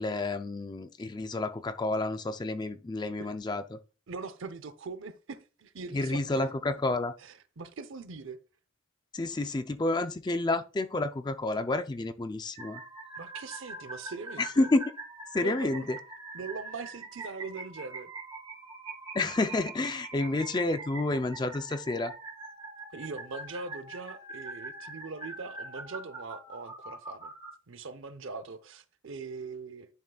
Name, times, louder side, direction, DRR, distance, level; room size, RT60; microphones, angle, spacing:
voice 1, 0.0-3.8 5.9-7.1 9.1-12.8 14.4-14.9 15.3-16.0 19.1-22.1, left 2 dB, 20° left, 0.3 m, -30 dB
voice 2, 4.1-6.5 7.2-8.4 13.2-14.7 15.4-15.9 16.3-18.1 22.9-27.3 27.7-29.9, right 4 dB, 65° right, 0.6 m, -41 dB
sound 1, 12.5-27.5, right 3 dB, 20° right, 1.2 m, -44 dB
10.5 x 3.8 x 2.3 m
head